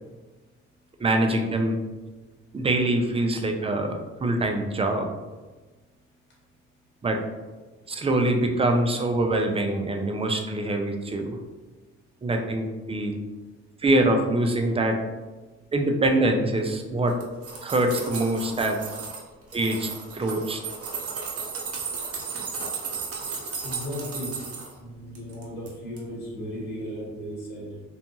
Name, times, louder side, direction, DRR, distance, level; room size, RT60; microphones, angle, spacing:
voice 1, 1.0-1.8 2.5-5.1 7.0-7.2 7.9-11.4 12.2-13.1 13.8-15.0 15.7-17.2 17.6-18.8 19.5-19.9 20.1-20.6, right 1 dB, 20° right, 3 dB, 0.3 m, -24 dB
sound 1, 17.1-19.2 19.5-24.7 25.1-25.7 26.0-26.1, right 5 dB, 50° right, 0.7 m, -34 dB
voice 2, 23.6-24.3 24.8-27.8, equal, 35° left, -5 dB, 1.1 m, -35 dB
2.5 x 2.2 x 2.9 m, 1.2 s
cardioid pair, 90°, 30 cm